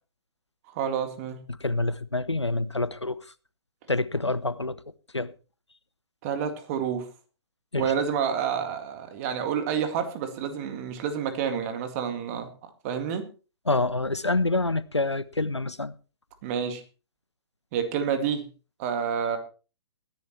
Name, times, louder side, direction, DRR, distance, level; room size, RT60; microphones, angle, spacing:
voice 1, 0.7-1.4 6.2-7.1 7.8-12.5 12.8-13.3 16.4-16.8 17.7-18.5 18.8-19.4, right 7 dB, 30° right, 2.1 m, -29 dB
voice 2, 1.5-3.2 3.9-4.8 5.1-5.3 7.7-7.9 13.7-15.9, left 2 dB, 85° left, 0.7 m, -27 dB
20.0 x 10.5 x 3.1 m
figure-of-eight pair, 120°, 14 cm